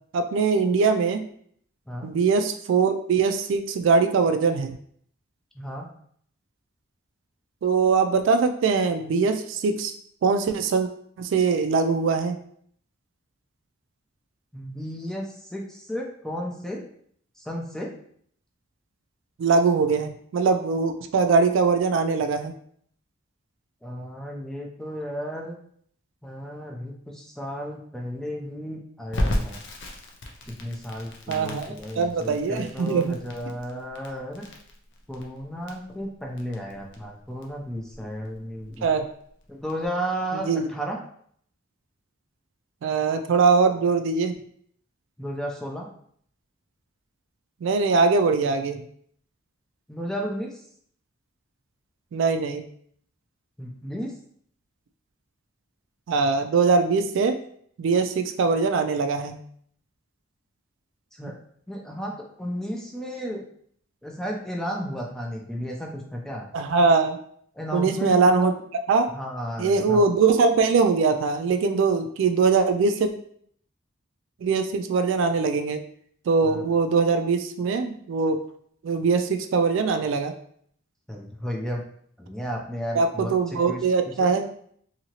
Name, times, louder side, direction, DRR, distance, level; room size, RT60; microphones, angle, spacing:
voice 1, 0.1-1.2 2.0-4.8 7.6-9.9 10.2-10.9 11.2-12.4 19.4-22.5 31.3-33.2 38.8-39.0 40.3-40.7 42.8-44.3 47.6-48.8 52.1-52.6 56.1-57.3 57.8-59.4 61.2-61.3 66.5-67.2 67.7-68.5 68.9-69.1 69.6-73.1 74.4-75.8 76.3-78.4 78.8-80.3 82.9-84.5, right 4 dB, 70° right, 7 dB, 0.3 m, -22 dB
voice 2, 14.5-16.8 17.4-17.9 23.8-25.6 26.2-29.6 30.5-34.4 35.1-38.9 39.5-41.0 45.2-45.9 49.9-50.5 53.6-54.1 61.1-61.4 61.7-63.4 64.0-66.5 67.6-68.6 69.1-70.0 76.4-76.6 81.1-81.8 82.2-83.3 83.7-84.3, equal, 5° left, -1 dB, 0.4 m, -33 dB
Crackle, 29.1-39.9, left 1 dB, 65° left, 0.5 m, -34 dB
2.8 x 2.7 x 2.9 m, 0.63 s
head